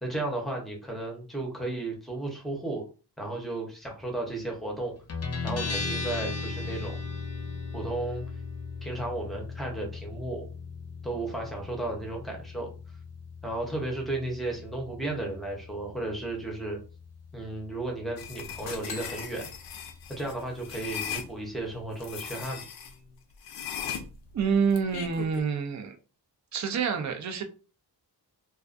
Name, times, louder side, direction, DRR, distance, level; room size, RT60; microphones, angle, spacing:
voice 1, 0.0-2.8 3.2-4.9 5.4-7.0 7.7-8.2 8.8-10.4 11.0-12.7 13.4-16.8 17.3-19.5 20.1-22.6, right 2 dB, ahead, 0 dB, 0.7 m, -34 dB
Guitar, 5.1-22.3, left 4 dB, 40° left, 0.6 m, -39 dB
sound 1, 18.2-21.3 22.0-22.9 23.4-25.4, left 8 dB, 85° left, 0.5 m, -38 dB
voice 2, 24.3-26.0 26.5-27.4, right 6 dB, 45° right, 6 dB, 0.4 m, -27 dB
2.3 x 2.3 x 2.4 m, 0.35 s
wide cardioid pair, 120°, 41 cm